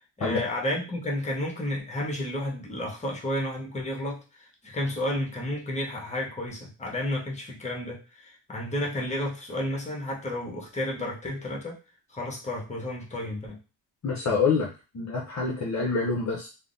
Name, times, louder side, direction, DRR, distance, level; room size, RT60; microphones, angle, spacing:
voice 1, 0.2-11.8 12.1-13.6, left 1 dB, 15° left, -1 dB, 0.9 m, -32 dB
voice 2, 14.0-14.7 14.9-16.5, left 4 dB, 40° left, -1 dB, 0.6 m, -26 dB
3.3 x 2.0 x 2.6 m, 0.32 s
cardioid pair, 70°, 46 cm